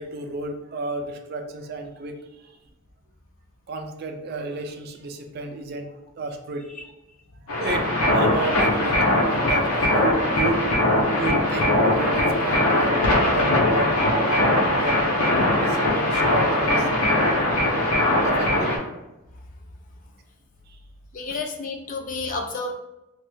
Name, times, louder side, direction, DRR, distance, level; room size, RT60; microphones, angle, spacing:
voice 1, 0.0-2.2 3.7-6.6 7.6-10.8 11.2-15.0 15.5-16.9 18.2-18.9 20.7-20.8, right 2 dB, 45° right, 5 dB, 0.3 m, -32 dB
sound 1, 7.5-18.8, left 1 dB, 80° left, 0.7 m, -21 dB
voice 2, 21.1-22.7, left 3 dB, 35° left, 3 dB, 0.3 m, -31 dB
3.0 x 2.3 x 3.1 m, 0.98 s
head